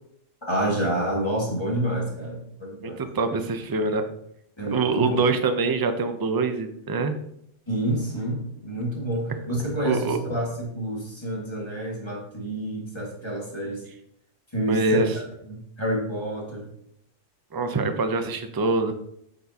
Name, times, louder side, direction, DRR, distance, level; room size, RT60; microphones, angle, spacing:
voice 1, 0.4-3.0 4.6-5.2 7.7-13.8 14.5-16.7, right 1 dB, 20° left, -3 dB, 1.9 m, -28 dB
voice 2, 2.8-4.0 4.7-7.1 9.8-10.2 14.7-15.1 17.5-18.9, right 3 dB, 25° right, 7 dB, 0.4 m, -24 dB
8.1 x 6.7 x 2.8 m, 0.72 s
omnidirectional pair, 1.3 m